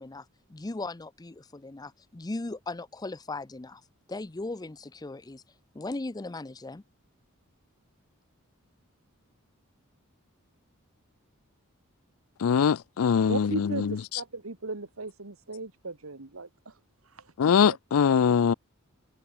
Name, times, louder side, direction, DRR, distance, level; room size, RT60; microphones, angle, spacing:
voice 1, 0.0-3.8 4.1-5.4 5.7-6.8, left 2 dB, 20° left, 0.5 m, -38 dB
voice 2, 12.4-14.0 17.4-18.5, left 7 dB, 75° left, 0.4 m, -22 dB
voice 3, 13.3-16.7 17.1-17.2, right 3 dB, 80° right, 1.9 m, -36 dB
head